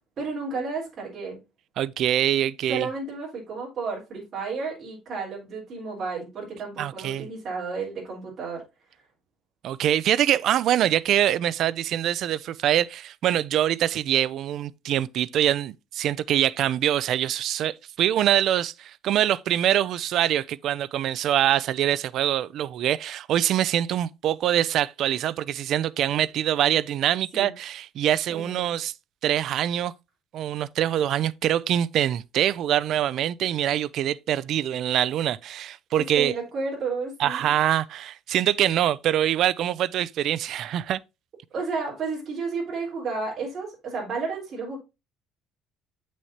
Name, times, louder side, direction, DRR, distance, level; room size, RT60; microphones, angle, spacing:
voice 1, 0.2-1.4 2.7-8.6 27.3-27.5 28.3-28.7 35.9-37.5 41.5-44.8, right 4 dB, 30° right, 3.9 m, -32 dB
voice 2, 1.8-2.9 6.8-7.3 9.6-28.9 29.2-29.9 30.3-36.3 37.2-41.0, right 11 dB, 50° right, 0.4 m, -24 dB
7.9 x 6.2 x 2.8 m
cardioid pair, 170°, 0 cm